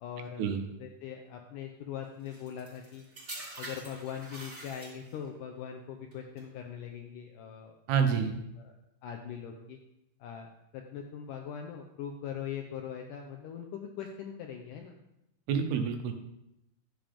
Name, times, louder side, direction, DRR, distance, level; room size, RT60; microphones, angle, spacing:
voice 1, 0.0-0.4 0.8-3.1 3.6-7.8 8.6-8.7 9.0-9.8 10.2-15.0, left 8 dB, 80° left, 3 dB, 1.9 m, -41 dB
sound 1, 2.3-5.3 6.1-6.4, right 1 dB, 20° right, 2.9 m, -45 dB
voice 2, 7.9-8.4 15.5-16.1, right 6 dB, 90° right, 6 dB, 3.0 m, -28 dB
12.0 x 7.6 x 3.5 m, 0.84 s
omnidirectional pair, 4.5 m